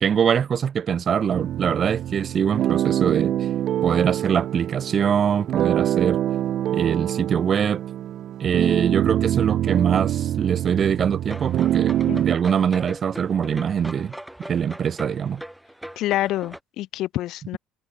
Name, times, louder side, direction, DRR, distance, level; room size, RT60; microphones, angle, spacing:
voice 1, 0.0-3.5 3.8-6.2 6.7-7.8 8.4-15.4, right 7 dB, 40° right, 0.8 m, -23 dB
sound 1, 1.3-12.4, right 12 dB, 55° right, 2.3 m, -24 dB
sound 2, 11.3-16.6, right 1 dB, 5° right, 1.6 m, -40 dB
voice 2, 16.0-17.6, left 15 dB, 65° left, 1.6 m, -27 dB
cardioid pair, 110°, 0 cm